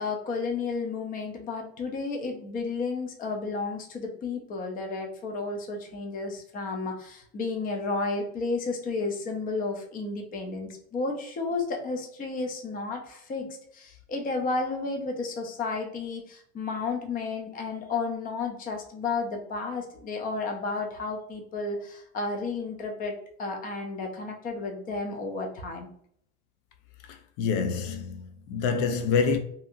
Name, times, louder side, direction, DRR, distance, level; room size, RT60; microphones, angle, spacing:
voice 1, 0.0-13.5 13.7-25.9, left 3 dB, 30° left, 0.5 m, -32 dB
voice 2, 27.1-29.4, left 5 dB, 75° left, 0.5 m, -27 dB
2.8 x 2.6 x 2.4 m
cardioid pair, 150°, 31 cm